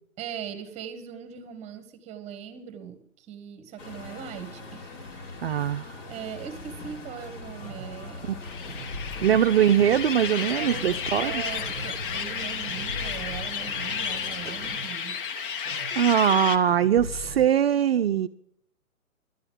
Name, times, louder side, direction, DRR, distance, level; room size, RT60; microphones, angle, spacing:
voice 1, 0.2-5.2 5.5-5.6 6.1-8.3 9.3-9.4 10.6-15.2, right 9 dB, 15° right, 11 dB, 1.2 m, -40 dB
Truck, 3.8-14.8, left 2 dB, 60° left, 2.8 m, -41 dB
voice 2, 5.4-5.9 8.2-8.4 9.2-11.4 16.0-18.3, right 9 dB, 45° right, 10 dB, 0.5 m, -22 dB
sound 1, 7.5-17.5, left 1 dB, 80° left, 5.0 m, -43 dB
sound 2, 8.4-16.6, left 7 dB, 40° left, 1.0 m, -32 dB
11.5 x 9.7 x 7.5 m, 0.68 s
figure-of-eight pair, 135°, 42 cm